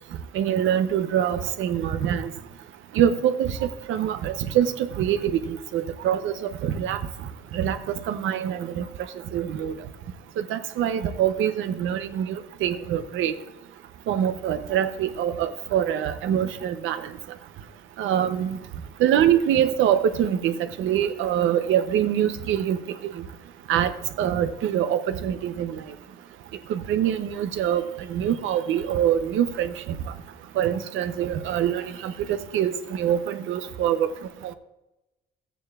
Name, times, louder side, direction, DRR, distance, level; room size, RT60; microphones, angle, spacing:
voice 1, 0.3-2.3 2.9-7.0 7.5-8.8 9.3-9.7 10.4-13.4 14.1-17.1 18.0-18.6 19.0-22.8 23.0-23.1 23.7-23.9 24.2-25.8 26.7-27.8 28.1-29.7 30.6-34.1 34.4-34.5, right 10 dB, 85° right, 10 dB, 0.7 m, -24 dB
14.0 x 9.1 x 2.4 m, 1.0 s
cardioid pair, 90°, 20 cm